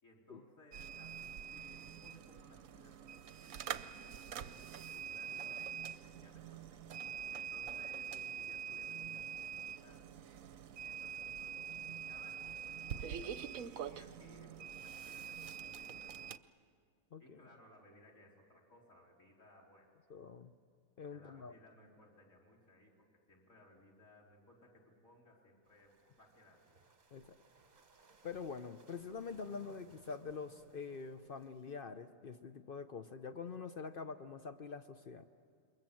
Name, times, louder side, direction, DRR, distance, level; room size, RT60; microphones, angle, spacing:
voice 1, 0.0-6.8 7.3-10.0 10.8-16.1 17.2-19.9 21.1-26.8, left 1 dB, 45° left, 0 dB, 4.7 m, -63 dB
sound 1, 0.7-16.4, right 8 dB, 60° right, 1.0 m, -45 dB
voice 2, 20.1-20.5 21.0-21.5 27.1-27.3 28.2-35.3, left 5 dB, 75° left, 9 dB, 0.5 m, -45 dB
sound 2, 25.6-31.8, right 4 dB, 30° right, 1.0 m, -66 dB
28.0 x 22.5 x 7.7 m, 2.3 s
omnidirectional pair, 1.9 m